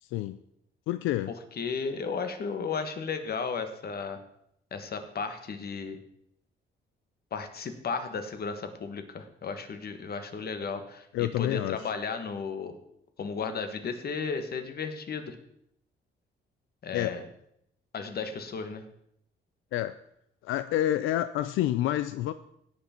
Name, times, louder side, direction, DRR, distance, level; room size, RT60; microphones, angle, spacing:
voice 1, 0.0-0.4 0.9-1.3 11.1-11.9 16.9-17.2 19.7-20.0 20.4-22.3, left 13 dB, 90° left, 13 dB, 0.4 m, -28 dB
voice 2, 1.6-4.2 4.7-6.0 7.3-12.7 13.2-15.4 16.8-17.2 17.9-18.8, left 5 dB, 50° left, 8 dB, 1.5 m, -34 dB
17.0 x 5.9 x 4.4 m, 0.74 s
cardioid pair, 90°, 20 cm